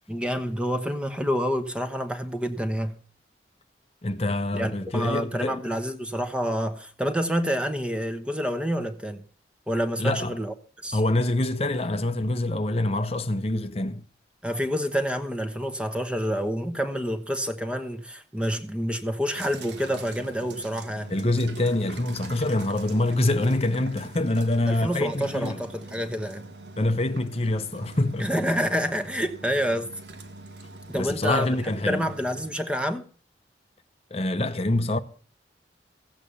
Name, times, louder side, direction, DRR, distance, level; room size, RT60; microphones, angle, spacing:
voice 1, 0.1-3.0 4.5-9.2 9.7-10.5 10.8-11.0 14.4-21.1 24.7-26.5 28.2-29.9 30.9-31.6 31.9-33.0, equal, 5° right, 1.1 m, -28 dB
voice 2, 4.0-5.6 10.0-10.3 10.9-14.0 21.1-25.6 26.8-28.3 30.9-32.0 34.1-35.0, left 1 dB, 35° left, 0.8 m, -25 dB
sound 1, 19.3-32.5, right 2 dB, 75° right, 1.7 m, -44 dB
15.5 x 8.4 x 7.0 m
head